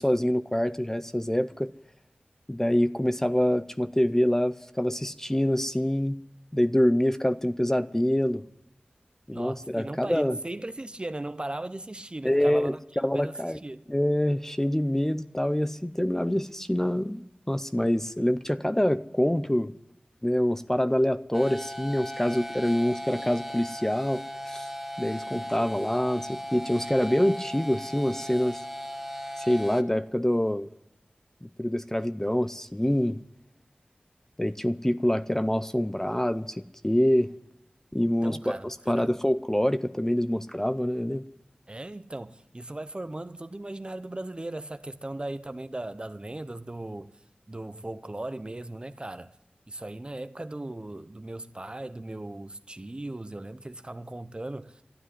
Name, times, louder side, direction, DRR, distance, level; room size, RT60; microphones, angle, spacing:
voice 1, 0.0-1.7 2.5-6.2 6.5-8.4 9.3-10.4 12.2-13.6 13.9-19.7 20.2-24.7 25.0-28.6 29.4-30.7 31.4-33.2 34.4-37.3 37.9-41.2, equal, 15° left, 0.5 m, -26 dB
voice 2, 9.3-12.8 13.1-13.8 38.0-39.1 41.7-47.1 47.5-49.3 49.7-54.8, right 1 dB, 30° right, 0.7 m, -38 dB
sound 1, 21.3-29.8, equal, 5° right, 1.2 m, -37 dB
12.5 x 10.0 x 9.7 m
wide cardioid pair, 50°, 3 cm